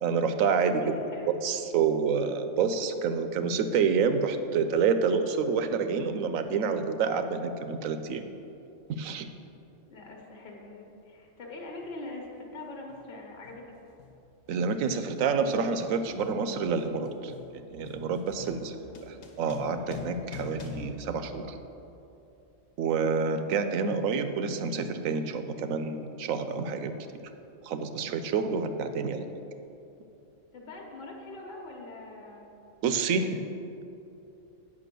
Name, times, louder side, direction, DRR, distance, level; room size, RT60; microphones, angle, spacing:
voice 1, 0.0-1.0 1.4-8.2 9.0-9.3 14.5-18.8 19.1-21.6 22.8-26.9 27.6-29.3 32.8-33.4, right 5 dB, 85° right, 9 dB, 1.0 m, -28 dB
voice 2, 0.8-1.5 9.9-13.7 18.5-19.0 30.5-32.5, left 2 dB, 40° left, 0 dB, 1.2 m, -43 dB
sound 1, 11.8-12.0 12.9-13.2 13.4-22.0, left 5 dB, 80° left, 1.3 m, -46 dB
8.4 x 5.5 x 6.7 m, 2.8 s
omnidirectional pair, 1.4 m